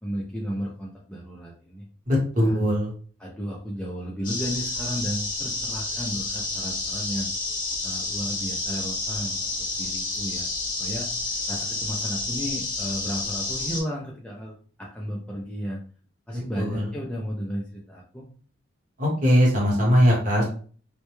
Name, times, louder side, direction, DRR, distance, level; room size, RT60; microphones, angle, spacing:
voice 1, 0.0-1.9 2.4-2.6 3.2-7.3 7.8-10.5 10.8-11.1 11.5-15.8 16.3-18.3, equal, 5° left, -3 dB, 0.3 m, -33 dB
voice 2, 2.1-2.9 16.3-16.9 19.0-20.4, equal, 40° right, -3 dB, 1.0 m, -21 dB
sound 1, 4.2-13.8, left 3 dB, 45° left, 0.7 m, -30 dB
2.1 x 2.1 x 2.9 m, 0.43 s
head